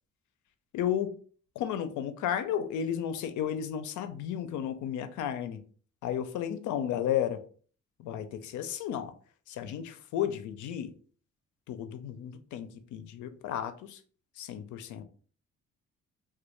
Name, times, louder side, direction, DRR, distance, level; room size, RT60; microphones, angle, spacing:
voice 1, 0.7-1.1 1.6-5.6 6.0-7.4 8.0-9.1 9.5-10.9 11.7-14.0 14.4-15.0, left 9 dB, 75° left, 0.5 m, -33 dB
2.2 x 2.2 x 3.0 m
cardioid pair, 90°, 30 cm